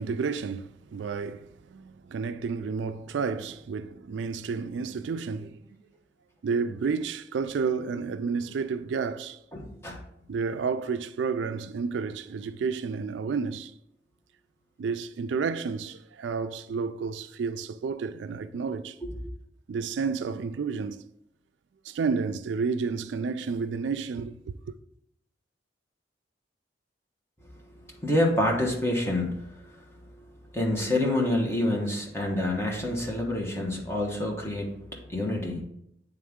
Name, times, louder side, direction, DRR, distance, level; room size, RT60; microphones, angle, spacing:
voice 1, 0.0-5.8 6.4-9.4 10.3-13.7 14.8-19.0 19.7-21.0 21.8-24.6, right 5 dB, 80° right, 0.4 m, -31 dB
voice 2, 9.5-10.0 19.0-19.1 28.0-29.8 30.2-30.3 30.5-35.6, left 1 dB, 15° left, 1.1 m, -27 dB
8.6 x 3.5 x 3.6 m
head